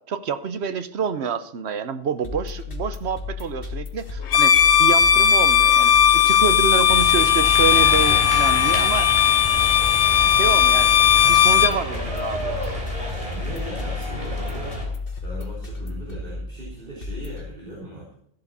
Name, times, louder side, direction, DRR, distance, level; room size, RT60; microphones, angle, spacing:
voice 1, 0.1-9.1 9.7-9.9 10.3-12.9, right 7 dB, 70° right, 12 dB, 1.1 m, -28 dB
sound 1, 2.2-17.5, left 4 dB, 55° left, 1.7 m, -33 dB
Bowed string instrument, 4.3-11.8, left 9 dB, 85° left, 1.1 m, -17 dB
sound 2, 6.9-14.8, equal, 30° right, 4.4 m, -30 dB
voice 2, 13.3-14.9 15.2-18.1, right 1 dB, 50° right, -6 dB, 3.9 m, -38 dB
13.5 x 11.5 x 4.2 m, 0.67 s
omnidirectional pair, 1.1 m